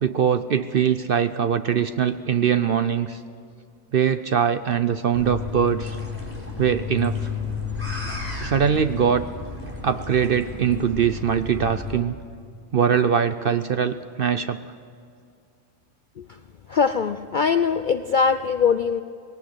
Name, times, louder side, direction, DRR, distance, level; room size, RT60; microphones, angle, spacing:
voice 1, 0.0-3.2 3.9-6.0 6.6-7.2 8.4-9.3 9.8-12.1 12.7-14.6, right 8 dB, 55° right, 11 dB, 0.7 m, -22 dB
sound 1, 5.1-12.0, left 4 dB, 10° right, 3.8 m, -32 dB
voice 2, 16.7-19.0, left 6 dB, 60° left, 10 dB, 0.5 m, -21 dB
19.0 x 18.0 x 8.0 m, 2.4 s
omnidirectional pair, 1.4 m